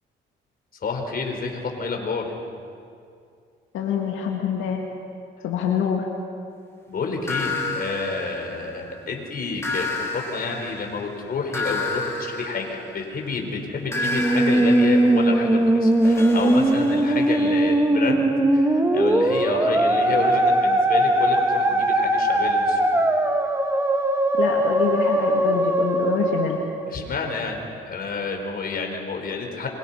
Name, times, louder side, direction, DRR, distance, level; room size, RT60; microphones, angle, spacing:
voice 1, 0.8-2.3 6.9-22.9 26.9-29.7, left 4 dB, 50° left, 2 dB, 4.6 m, -29 dB
voice 2, 3.7-4.8 5.4-6.1 24.4-26.6, left 7 dB, 85° left, 0 dB, 2.2 m, -25 dB
sound 1, 7.3-9.0 9.6-13.3 13.9-17.6, left 2 dB, 15° left, 4.5 m, -31 dB
Musical instrument, 14.0-27.3, right 1 dB, 15° right, 2.0 m, -20 dB
27.0 x 23.5 x 5.8 m, 2.4 s
cardioid pair, 90°, 20 cm